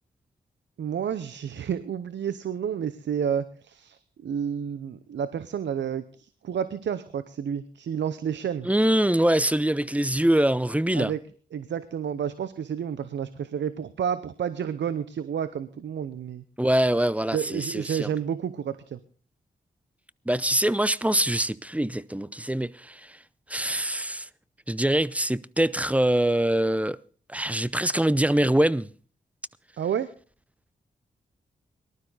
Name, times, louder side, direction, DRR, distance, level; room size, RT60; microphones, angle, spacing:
voice 1, 0.8-8.7 10.9-11.2 11.5-16.4 17.3-19.0 29.8-30.1, right 8 dB, 75° right, 0.8 m, -30 dB
voice 2, 8.6-11.1 16.6-18.1 20.3-23.2 23.5-24.3 24.7-27.0 27.3-28.9, right 1 dB, 5° right, 0.7 m, -24 dB
19.0 x 12.5 x 4.0 m
cardioid pair, 50°, 19 cm